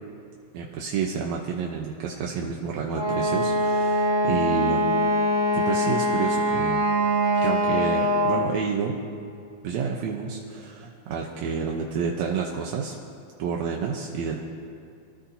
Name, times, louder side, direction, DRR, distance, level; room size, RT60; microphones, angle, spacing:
voice 1, 0.5-4.8 5.5-6.9 7.4-8.9 9.6-13.0 13.4-14.4, right 6 dB, 70° right, 0 dB, 1.8 m, -29 dB
Wind instrument woodwind instrument, 2.9-8.6, equal, 30° left, 0.7 m, -23 dB
27.5 x 14.5 x 2.8 m, 2.4 s
omnidirectional pair, 4.1 m